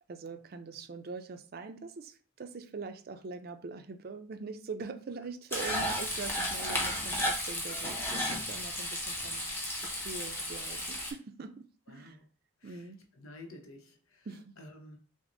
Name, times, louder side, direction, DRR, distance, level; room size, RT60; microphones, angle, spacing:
voice 1, 0.1-9.4 9.8-12.2 12.6-13.0 14.3-14.5, right 4 dB, 45° right, 0.4 m, -43 dB
Frying (food), 5.5-11.1, left 1 dB, 10° left, 0.7 m, -34 dB
voice 2, 11.9-12.3 12.6-12.9 13.2-14.3 14.6-15.0, left 1 dB, 85° left, 0.8 m, -51 dB
6.0 x 2.0 x 2.6 m
head